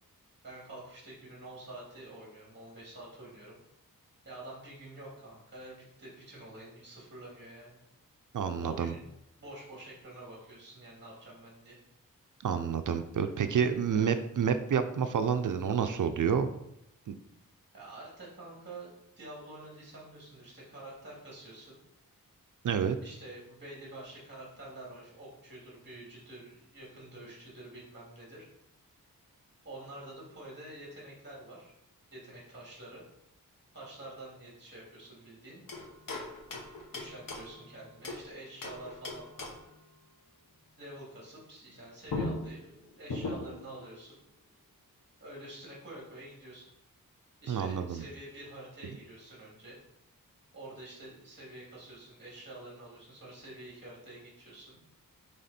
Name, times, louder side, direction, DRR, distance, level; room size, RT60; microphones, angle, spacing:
voice 1, 0.4-3.6 4.2-7.8 8.6-9.1 9.4-11.7 13.9-14.2 17.7-18.9 19.2-21.8 23.0-28.5 29.6-31.7 32.1-33.0 33.7-35.6 36.9-39.5 40.8-44.2 45.2-46.7 47.4-49.8 50.5-54.8, right 1 dB, 30° right, -5 dB, 2.8 m, -48 dB
voice 2, 8.3-8.9 12.4-16.5 17.1-17.2 22.6-23.0 47.5-48.0, right 7 dB, 65° right, 9 dB, 0.5 m, -29 dB
sound 1, 35.7-38.3 38.6-39.8 41.7-41.8 42.1-43.7, left 2 dB, 70° left, 1.3 m, -39 dB
9.2 x 3.5 x 4.3 m, 0.80 s
wide cardioid pair, 150°, 34 cm